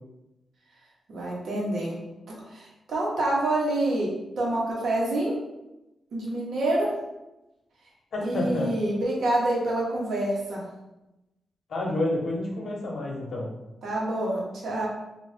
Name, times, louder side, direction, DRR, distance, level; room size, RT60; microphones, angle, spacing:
voice 1, 1.1-1.9 2.3-4.1 4.4-5.3 6.1-6.9 8.2-10.6 13.8-14.9, right 1 dB, 75° right, -4 dB, 1.0 m, -27 dB
voice 2, 8.1-8.7 11.7-13.5, left 1 dB, 65° left, -2 dB, 0.8 m, -29 dB
2.7 x 2.4 x 3.3 m, 0.97 s
wide cardioid pair, 115°, 0 cm